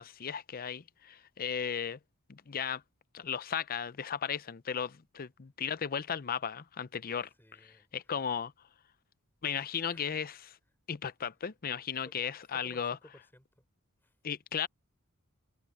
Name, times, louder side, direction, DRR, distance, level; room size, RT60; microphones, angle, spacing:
voice 1, 0.0-2.0 2.3-2.8 3.1-7.3 7.9-8.5 9.4-10.6 10.9-13.0 14.2-14.7, left 7 dB, 45° left, 0.6 m, -35 dB
voice 2, 7.4-7.9 9.8-10.5 12.0-13.7 14.0-14.2, left 1 dB, 10° left, 5.2 m, -58 dB
head